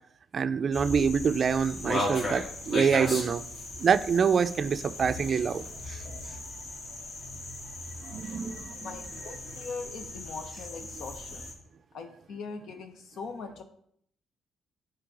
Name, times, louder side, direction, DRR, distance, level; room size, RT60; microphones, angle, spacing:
voice 1, 0.3-3.4 3.8-6.0 8.0-8.9, right 6 dB, 50° right, 12 dB, 0.4 m, -26 dB
sound 1, 0.7-11.5, left 1 dB, 50° left, 1.9 m, -37 dB
voice 2, 8.7-11.5 11.9-13.6, left 4 dB, 70° left, 6 dB, 1.0 m, -41 dB
8.6 x 3.3 x 4.8 m, 0.67 s
cardioid pair, 90°, 0 cm